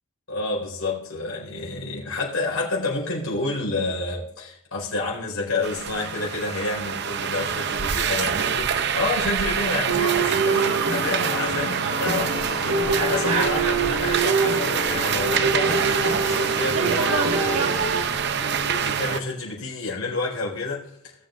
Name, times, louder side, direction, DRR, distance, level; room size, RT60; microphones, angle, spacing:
voice 1, 0.3-18.0 18.4-21.1, left 3 dB, 80° left, -3 dB, 4.5 m, -29 dB
sound 1, 5.6-19.2, right 7 dB, 50° right, 0.6 m, -26 dB
sound 2, 9.9-18.0, right 4 dB, 90° right, 1.6 m, -25 dB
sound 3, 12.0-18.8, right 1 dB, 70° right, 2.9 m, -43 dB
19.5 x 7.6 x 2.5 m, 0.80 s
head